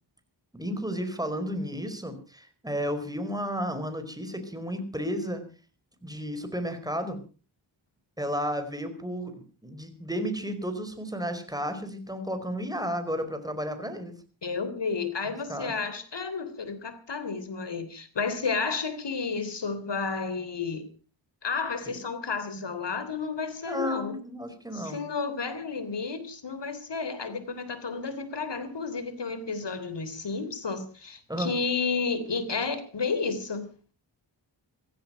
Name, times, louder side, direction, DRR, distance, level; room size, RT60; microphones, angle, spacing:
voice 1, 0.5-5.4 6.0-7.2 8.2-14.1 15.3-15.7 21.9-22.0 23.7-25.0 31.3-31.5, equal, 10° right, 8 dB, 4.8 m, -33 dB
voice 2, 14.4-20.9 21.4-24.2 24.7-33.7, left 4 dB, 60° left, 12 dB, 3.5 m, -31 dB
16.0 x 15.0 x 5.7 m, 0.38 s
cardioid pair, 55°, 48 cm